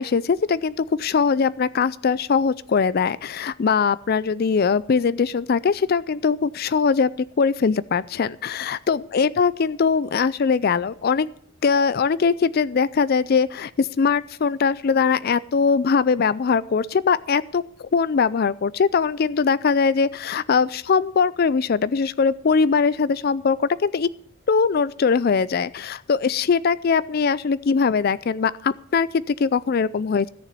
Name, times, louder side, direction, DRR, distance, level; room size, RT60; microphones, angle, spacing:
voice 1, 0.0-7.1 7.4-11.3 11.6-24.1 24.5-30.3, left 5 dB, 50° left, 18 dB, 0.4 m, -21 dB
14.0 x 6.8 x 7.4 m, 0.63 s
head